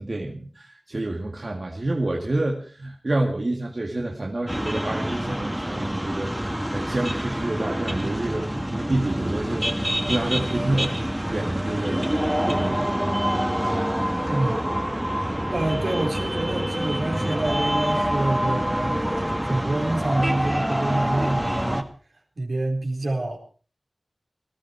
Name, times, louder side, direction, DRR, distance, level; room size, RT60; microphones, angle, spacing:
voice 1, 0.0-11.0 11.3-12.0 12.4-12.9, right 2 dB, 55° right, 1 dB, 2.1 m, -28 dB
sound 1, 4.5-21.8, equal, 10° right, 1.9 m, -26 dB
voice 2, 14.3-14.6 15.5-19.0 19.4-21.9 22.4-23.4, right 2 dB, 75° right, 1 dB, 4.1 m, -27 dB
19.5 x 13.0 x 4.6 m, 0.40 s
wide cardioid pair, 40°, 0 cm